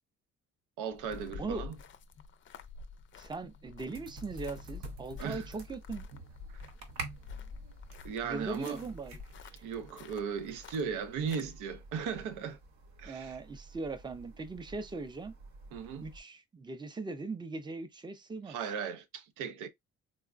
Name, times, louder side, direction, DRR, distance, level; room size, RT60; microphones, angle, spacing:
voice 1, 0.8-1.8 5.2-5.5 8.0-8.8 9.6-12.6 13.0-13.4 15.7-16.0 18.5-19.7, right 6 dB, 90° right, 0.6 m, -37 dB
sound 1, 0.9-11.4, left 5 dB, 40° left, 0.5 m, -49 dB
voice 2, 3.2-6.0 8.2-9.5 13.0-15.3 16.0-18.6, right 3 dB, 15° right, 0.5 m, -40 dB
sound 2, 3.9-16.2, right 2 dB, 65° right, 0.9 m, -49 dB
3.8 x 2.0 x 2.4 m
cardioid pair, 90°, 30 cm